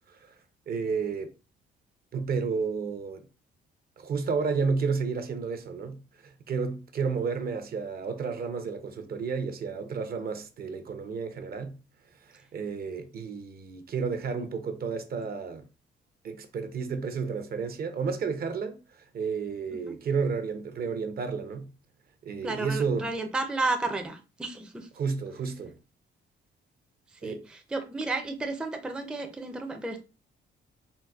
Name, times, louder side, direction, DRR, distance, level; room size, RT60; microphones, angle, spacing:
voice 1, 0.7-1.3 2.1-3.2 4.0-11.8 12.3-15.7 16.2-18.8 19.1-21.7 22.2-23.1 25.0-25.8 27.2-27.4, right 5 dB, 50° right, 0.6 m, -31 dB
voice 2, 22.4-24.9 27.2-30.0, right 2 dB, 5° right, 0.4 m, -32 dB
3.9 x 2.0 x 2.3 m
cardioid pair, 90°, 20 cm